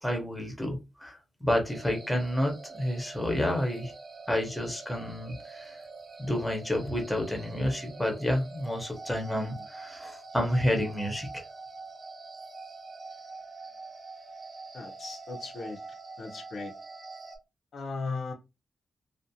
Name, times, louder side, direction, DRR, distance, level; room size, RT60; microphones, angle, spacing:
voice 1, 0.0-3.9 4.3-5.8 6.2-11.4, left 1 dB, 5° left, 0.8 m, -30 dB
sound 1, 1.7-17.4, right 3 dB, 35° right, 0.5 m, -45 dB
voice 2, 14.7-15.8 16.2-16.7 17.7-18.3, left 3 dB, 60° left, 0.5 m, -37 dB
2.4 x 2.0 x 2.7 m
wide cardioid pair, 125°, 0 cm